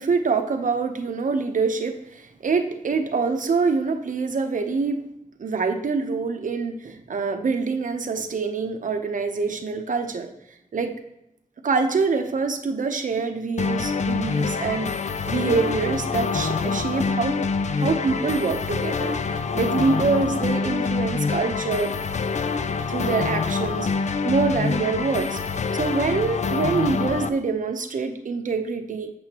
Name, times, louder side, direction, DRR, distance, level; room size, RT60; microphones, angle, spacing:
voice 1, 0.0-5.0 5.4-10.3 10.7-10.9 11.6-17.4 17.7-21.9 22.9-25.4 25.7-29.1, right 4 dB, 75° right, 6 dB, 0.8 m, -25 dB
sound 1, 13.6-27.3, left 4 dB, 60° left, 0.4 m, -26 dB
7.8 x 7.6 x 2.9 m, 0.81 s
wide cardioid pair, 115°, 14 cm